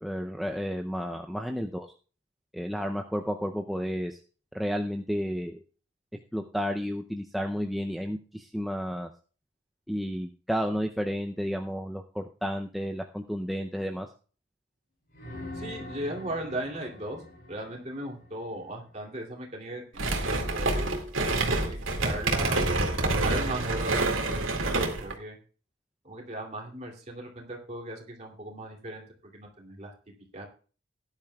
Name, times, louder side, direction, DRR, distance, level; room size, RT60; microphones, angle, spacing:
voice 1, 0.0-1.9 2.5-4.2 4.5-5.6 6.3-9.1 9.9-14.1, equal, ahead, 2 dB, 0.5 m, -32 dB
sound 1, 15.1-19.0 23.5-23.6, left 1 dB, 45° left, 4.0 m, -44 dB
voice 2, 15.6-17.2 17.5-20.9 21.6-22.7 23.0-25.4 26.0-29.0 29.3-29.9 30.3-30.5, right 1 dB, 35° right, 0 dB, 2.7 m, -37 dB
sound 2, 20.0-25.1, right 2 dB, 80° right, 2.2 m, -27 dB
17.5 x 10.5 x 2.3 m, 0.38 s
head